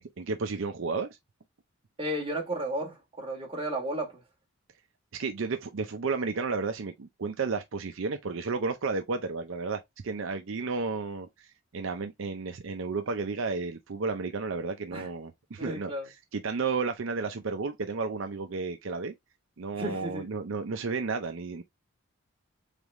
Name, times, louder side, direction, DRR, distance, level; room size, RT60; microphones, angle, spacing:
voice 1, 0.2-1.1 5.1-11.3 11.7-19.1 19.6-21.6, right 4 dB, 65° right, 0.5 m, -32 dB
voice 2, 2.0-4.2 14.9-15.1 15.6-16.1 19.7-20.3, right 1 dB, 25° right, 1.7 m, -33 dB
4.0 x 3.4 x 3.5 m
head